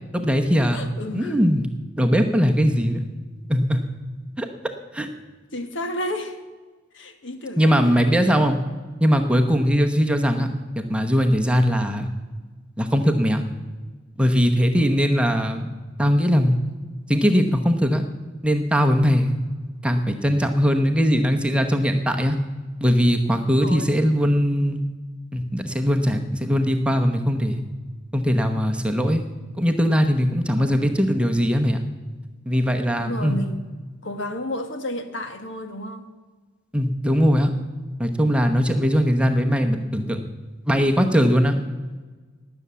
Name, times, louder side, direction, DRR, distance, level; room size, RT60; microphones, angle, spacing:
voice 1, 0.1-0.9 1.1-1.7 2.0-3.0 3.5-3.8 4.4-4.5 4.9-5.1 7.6-8.6 9.0-10.5 10.8-12.1 12.8-13.4 14.2-15.7 16.0-16.6 17.1-18.1 18.4-19.3 19.8-22.4 22.8-24.8 25.3-27.6 28.1-29.2 29.6-31.8 32.5-33.4 36.7-37.5 38.0-40.2 40.7-41.5, equal, 5° right, 4 dB, 0.9 m, -20 dB
voice 2, 0.7-1.4 5.5-6.4 6.9-8.2 23.6-24.0 30.6-30.9 33.0-33.6 34.0-36.1, left 1 dB, 70° left, 7 dB, 1.4 m, -32 dB
18.5 x 6.9 x 8.4 m, 1.3 s
head